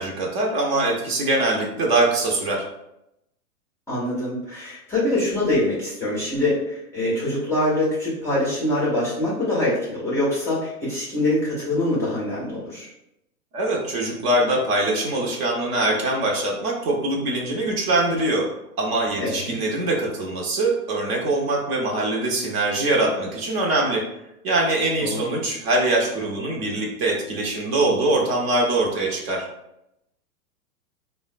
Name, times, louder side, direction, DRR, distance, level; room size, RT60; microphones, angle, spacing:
voice 1, 0.0-2.6 13.5-18.5 18.8-24.0 24.4-29.5, right 2 dB, 45° right, -1 dB, 0.7 m, -23 dB
voice 2, 3.9-12.9 19.2-19.5 25.0-25.3, left 1 dB, 5° left, -8 dB, 0.5 m, -24 dB
3.4 x 2.1 x 2.5 m, 0.84 s
hypercardioid pair, 115°, 45 cm